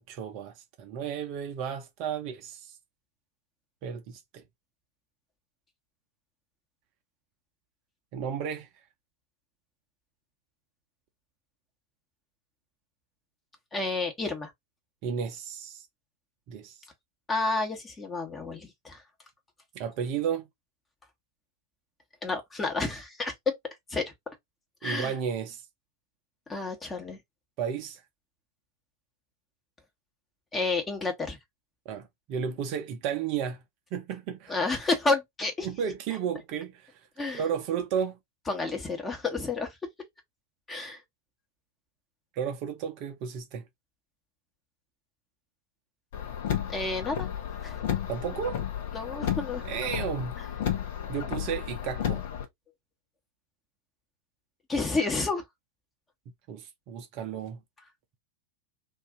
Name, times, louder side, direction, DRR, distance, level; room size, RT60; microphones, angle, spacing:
voice 1, 0.0-2.7 3.8-4.4 8.1-8.7 15.0-15.9 16.5-16.8 19.7-20.5 24.8-25.6 27.6-28.0 31.9-33.6 33.9-34.5 35.6-36.9 37.3-38.2 42.3-43.7 48.1-48.6 49.6-50.3 51.1-52.2 56.5-57.6, right 7 dB, 45° right, 0.6 m, -33 dB
voice 2, 13.7-14.5 17.3-19.0 22.2-23.6 23.9-24.1 24.8-25.1 26.5-27.2 30.5-31.4 34.5-35.7 37.2-37.4 38.5-39.7 40.7-41.0 46.7-47.3 47.6-47.8 48.9-49.6 54.7-55.4, left 3 dB, 15° left, 1.1 m, -30 dB
Car, 46.1-52.5, left 10 dB, 55° left, 0.8 m, -32 dB
2.5 x 2.5 x 3.6 m
figure-of-eight pair, 90°, 0 cm